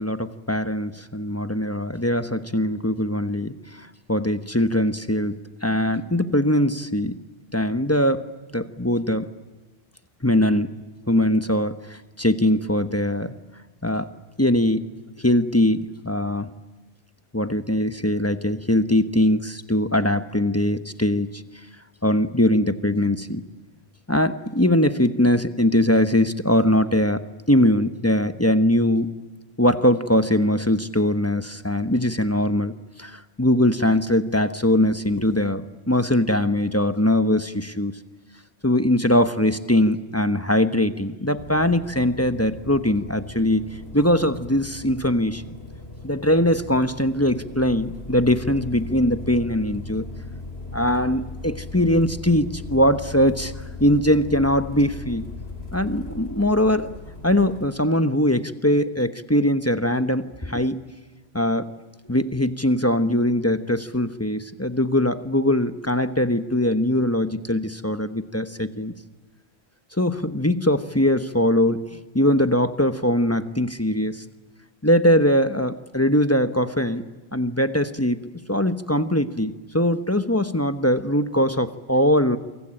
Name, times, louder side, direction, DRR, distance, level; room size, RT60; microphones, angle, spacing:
voice 1, 0.0-7.2 7.5-8.2 8.5-9.3 10.2-10.7 11.1-13.3 13.8-14.1 14.4-14.8 15.2-16.5 17.3-21.4 22.0-23.4 24.1-29.1 29.6-32.7 33.0-38.0 38.6-43.6 43.9-45.4 46.0-50.1 50.7-55.3 55.7-56.9 57.2-60.8 61.3-61.7 62.1-68.9 70.0-74.2 74.8-77.0 77.3-82.4, left 1 dB, 15° left, 10 dB, 1.0 m, -21 dB
sound 1, 41.4-57.7, left 3 dB, 80° left, 4.9 m, -38 dB
28.0 x 24.0 x 8.9 m, 1.2 s
omnidirectional pair, 1.1 m